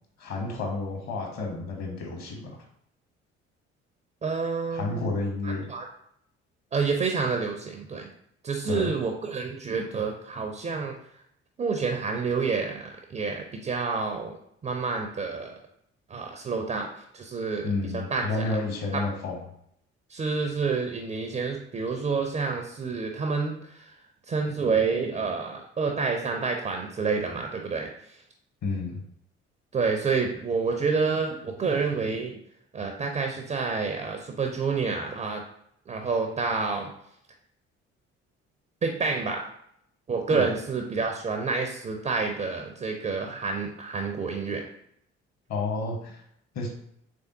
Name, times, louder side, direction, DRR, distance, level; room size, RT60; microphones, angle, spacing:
voice 1, 0.2-2.5 4.7-5.6 8.7-8.9 17.6-19.4 28.6-29.0 40.3-40.5 45.5-46.2 46.5-46.7, left 3 dB, 50° left, 1 dB, 1.1 m, -30 dB
voice 2, 4.2-5.2 5.4-5.9 6.7-8.1 8.4-11.0 11.6-14.3 14.6-15.5 16.1-16.9 17.1-18.3 18.9-19.0 20.1-23.9 24.3-28.2 29.7-32.4 32.7-35.4 35.9-36.9 38.8-39.4 40.1-44.6, right 4 dB, 20° right, 4 dB, 0.4 m, -28 dB
3.4 x 3.4 x 2.6 m, 0.71 s
figure-of-eight pair, 45°, 35 cm